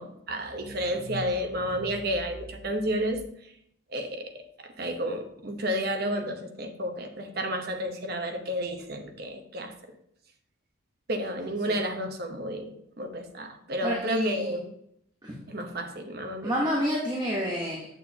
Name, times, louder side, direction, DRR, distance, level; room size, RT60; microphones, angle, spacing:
voice 1, 0.0-3.5 3.9-9.7 11.1-14.6 15.5-16.5, equal, 50° right, 5 dB, 0.9 m, -31 dB
voice 2, 13.8-14.5 15.2-15.4 16.4-18.0, equal, 20° right, -4 dB, 1.1 m, -28 dB
8.6 x 6.6 x 2.8 m, 0.72 s
head